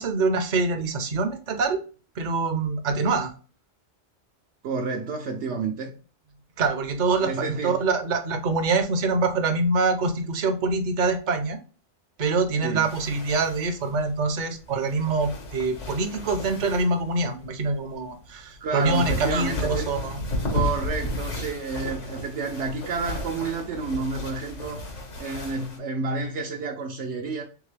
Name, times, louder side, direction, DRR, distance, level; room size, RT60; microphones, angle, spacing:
voice 1, 0.0-1.8 2.2-3.3 6.6-11.6 12.2-20.2, right 3 dB, 50° right, 0.7 m, -25 dB
voice 2, 4.6-5.9 7.2-7.8 12.6-12.9 18.6-19.9 20.4-24.8 25.2-27.4, right 4 dB, 75° right, 0.9 m, -30 dB
sound 1, 12.8-25.8, left 2 dB, 80° left, 1.7 m, -33 dB
3.6 x 3.5 x 3.3 m
omnidirectional pair, 1.2 m